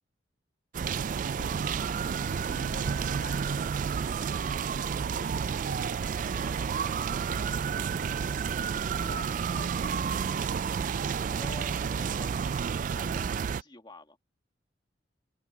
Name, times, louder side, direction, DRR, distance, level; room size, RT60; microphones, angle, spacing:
sound 1, 0.7-13.6, right 6 dB, 45° right, 0.3 m, -30 dB
voice 1, 1.3-3.7 9.0-10.1, left 4 dB, 60° left, 2.5 m, -48 dB
voice 2, 6.2-7.7 9.5-12.6 12.9-14.2, left 2 dB, 25° left, 2.2 m, -50 dB
head